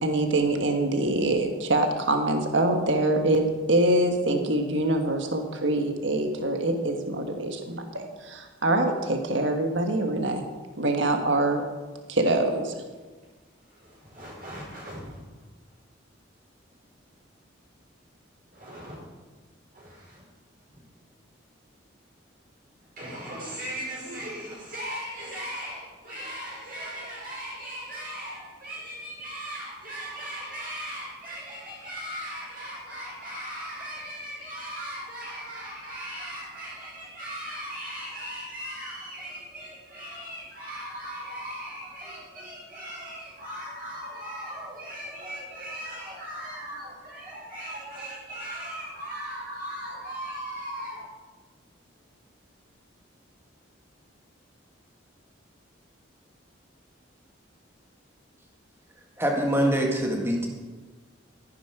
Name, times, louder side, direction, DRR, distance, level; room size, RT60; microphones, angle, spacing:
voice 1, 0.0-10.4 10.8-11.6 12.1-12.7, right 2 dB, 70° right, 4 dB, 1.5 m, -24 dB
voice 2, 13.7-15.2 16.7-16.8 18.5-19.0 19.7-20.2 23.0-51.1, equal, 45° right, -4 dB, 5.1 m, -38 dB
voice 3, 59.2-60.5, equal, 10° right, 0 dB, 1.9 m, -24 dB
15.0 x 10.5 x 4.9 m, 1.3 s
head